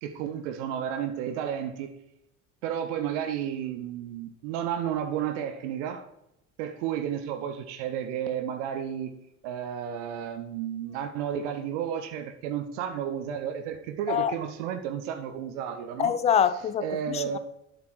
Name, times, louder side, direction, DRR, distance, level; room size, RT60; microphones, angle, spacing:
voice 1, 0.0-1.9 2.6-6.1 6.6-9.1 9.4-16.1 16.8-17.4, right 9 dB, 60° right, 0.8 m, -32 dB
voice 2, 16.0-17.4, left 8 dB, 20° left, 0.3 m, -25 dB
11.5 x 6.8 x 3.1 m
figure-of-eight pair, 55°, 40 cm